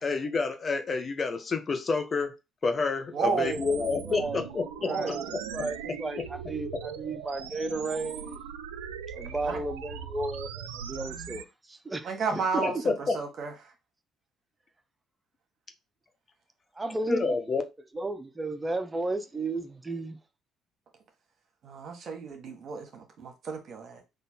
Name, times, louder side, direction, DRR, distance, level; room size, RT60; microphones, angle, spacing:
voice 1, 0.0-2.3 2.6-5.4 6.2-6.3 12.3-13.2 17.1-17.6, left 4 dB, 40° left, 0.8 m, -29 dB
voice 2, 3.1-3.7 4.8-5.3 9.4-9.6 12.0-12.7 13.1-13.5 21.6-24.0, right 5 dB, 55° right, 1.2 m, -32 dB
sound 1, 3.4-11.4, right 8 dB, 85° right, 0.3 m, -40 dB
voice 3, 4.0-4.4 4.8-5.2 5.5-8.4 9.1-12.1 12.5-12.8 16.8-17.2 17.9-20.2, right 2 dB, 20° right, 0.7 m, -34 dB
3.8 x 2.6 x 4.2 m
hypercardioid pair, 50°, 0 cm